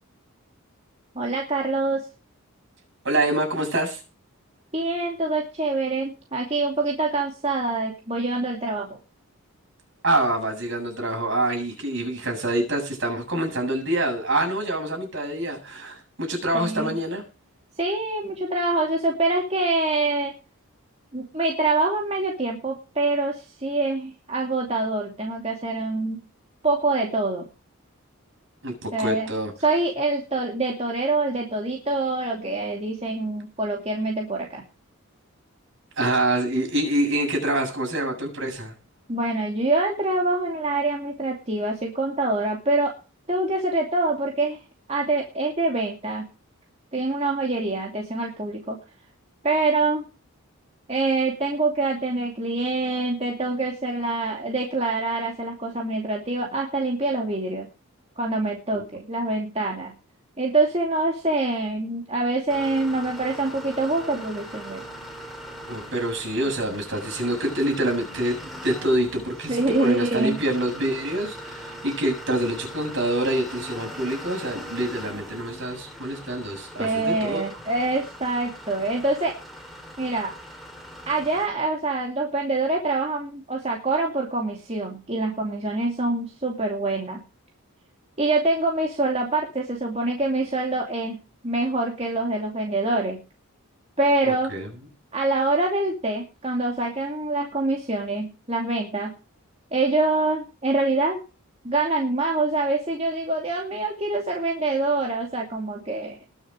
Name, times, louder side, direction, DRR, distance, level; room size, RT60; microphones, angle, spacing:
voice 1, 1.1-2.1 4.7-9.0 16.5-17.0 17.8-20.3 21.1-26.2 26.6-27.4 28.9-29.3 29.6-34.6 39.1-42.9 43.3-44.6 44.9-46.3 46.9-48.8 49.4-50.0 50.9-57.7 58.2-59.9 60.4-64.8 69.5-70.4 76.8-79.4 80.0-80.3 81.1-87.2 88.2-91.2 91.4-93.2 94.0-94.5 95.1-99.1 99.7-101.2 101.6-106.2, right 2 dB, 30° right, 0 dB, 2.5 m, -25 dB
voice 2, 3.0-4.0 10.0-17.2 28.6-29.5 36.0-38.7 58.7-58.8 65.7-77.4 94.2-94.7, right 1 dB, 55° right, 2 dB, 7.6 m, -26 dB
sound 1, 62.5-81.5, equal, ahead, 3.3 m, -40 dB
21.0 x 7.0 x 5.0 m, 0.33 s
head